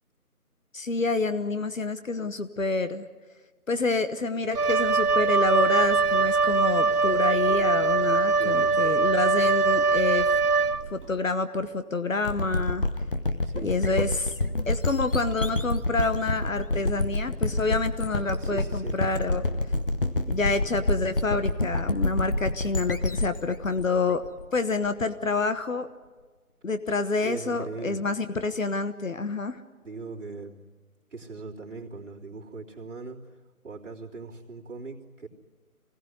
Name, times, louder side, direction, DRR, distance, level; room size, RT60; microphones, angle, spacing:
voice 1, 0.7-3.1 3.7-10.4 10.9-12.8 13.6-14.3 14.7-19.5 20.3-24.2 24.5-25.9 26.6-29.6, left 3 dB, 60° left, 10 dB, 1.2 m, -28 dB
Wind instrument woodwind instrument, 4.5-11.1, right 4 dB, 85° right, 1.0 m, -22 dB
voice 2, 8.4-8.8 13.4-13.7 18.4-19.0 27.1-28.1 29.8-30.6 31.1-33.3 33.6-35.3, right 3 dB, 55° right, -3 dB, 3.5 m, -39 dB
sound 1, 12.2-24.9, left 2 dB, 35° left, 1.0 m, -28 dB
25.0 x 17.5 x 9.6 m, 1.4 s
figure-of-eight pair, 170°, 45 cm